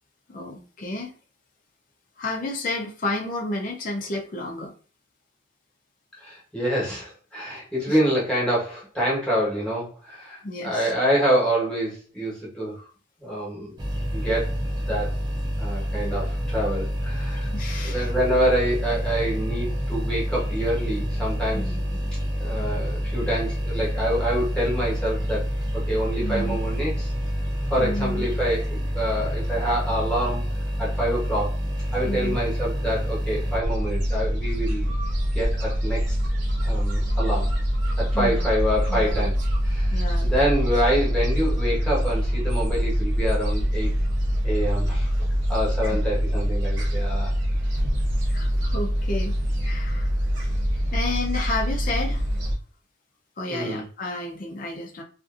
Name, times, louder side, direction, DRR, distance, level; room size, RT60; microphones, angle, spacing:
voice 1, 0.3-1.1 2.2-4.7 7.9-8.0 10.4-10.9 17.5-18.1 21.5-22.0 26.2-26.6 27.8-28.3 32.0-32.4 38.1-38.4 38.9-39.2 39.9-40.3 45.9-46.0 48.3-49.4 49.6-50.1 50.9-52.2 53.4-55.0, left 2 dB, 40° left, 0 dB, 0.5 m, -31 dB
voice 2, 6.2-12.8 13.2-13.8 14.1-14.6 14.9-15.1 15.6-17.5 17.8-21.7 22.4-25.5 25.9-27.1 27.7-30.5 30.8-31.6 31.9-34.9 35.3-36.2 36.6-37.5 38.0-39.4 39.6-43.9 44.4-45.1 45.5-47.3 53.5-53.8, equal, 5° left, -6 dB, 1.1 m, -26 dB
sound 1, 13.8-33.6, equal, 20° right, 0.4 m, -28 dB
Gull seagull, 33.6-52.5, equal, 65° right, 0.7 m, -24 dB
2.6 x 2.5 x 2.4 m, 0.38 s
head